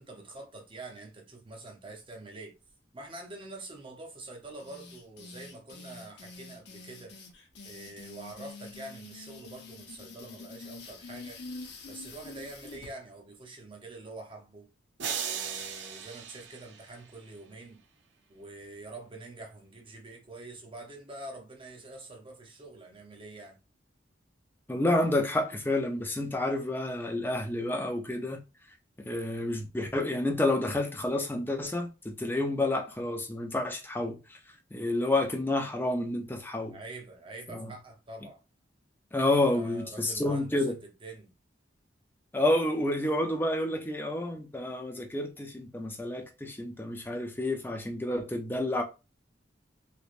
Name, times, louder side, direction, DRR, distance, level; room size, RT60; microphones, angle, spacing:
voice 1, 0.0-2.5 2.9-7.1 7.6-11.4 11.8-14.7 15.2-17.8 18.3-23.6 36.7-38.4 39.2-41.3, right 2 dB, 30° right, 0.8 m, -46 dB
sound 1, 4.6-12.9, left 3 dB, 65° left, 0.8 m, -46 dB
sound 2, 15.0-17.3, right 7 dB, 80° right, 0.6 m, -37 dB
voice 2, 24.7-28.4 29.0-34.4 34.7-36.8 37.5-37.7 39.1-40.7 42.3-48.8, left 1 dB, 10° left, 0.5 m, -29 dB
3.2 x 3.0 x 2.5 m
head